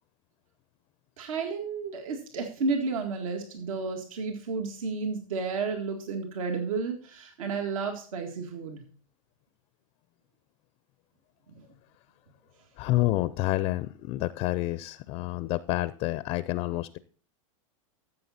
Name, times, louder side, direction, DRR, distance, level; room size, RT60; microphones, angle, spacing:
voice 1, 1.2-8.8 11.5-11.7, right 4 dB, 80° right, 4 dB, 1.9 m, -32 dB
voice 2, 12.8-17.0, left 17 dB, 35° left, 16 dB, 0.4 m, -28 dB
13.5 x 7.4 x 4.1 m, 0.43 s
supercardioid pair, 145°, 17 cm